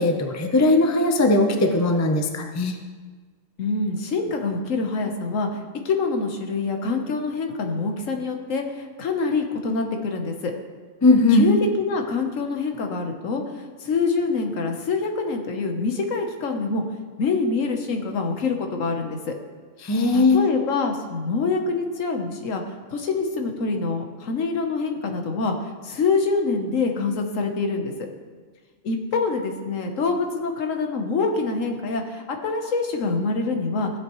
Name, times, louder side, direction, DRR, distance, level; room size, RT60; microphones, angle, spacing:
voice 1, 0.0-2.8 11.0-11.5 19.8-20.4, left 2 dB, 20° left, 3 dB, 0.6 m, -19 dB
voice 2, 3.6-10.5 11.3-16.8 17.2-19.3 20.1-22.6 22.9-25.5 25.8-27.9 28.8-33.9, left 4 dB, 75° left, 4 dB, 1.4 m, -25 dB
14.5 x 7.9 x 3.1 m, 1.5 s
omnidirectional pair, 1.3 m